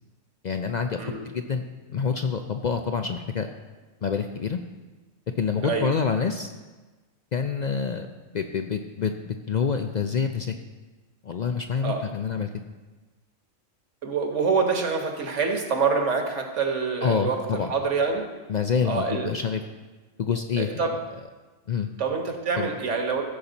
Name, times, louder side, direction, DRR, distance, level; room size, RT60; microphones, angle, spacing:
voice 1, 0.4-1.0 1.2-1.6 1.9-3.5 4.0-4.6 5.4-6.5 7.3-9.1 9.5-10.5 11.2-12.5 17.0-17.7 18.5-19.6 20.2-20.9 21.7-21.9 22.6-22.7, left 6 dB, 65° left, 6 dB, 0.4 m, -27 dB
voice 2, 14.0-18.2 18.8-19.3 20.6-21.0 22.0-23.2, right 5 dB, 65° right, 3 dB, 1.6 m, -26 dB
14.5 x 7.2 x 4.0 m, 1.2 s
omnidirectional pair, 1.4 m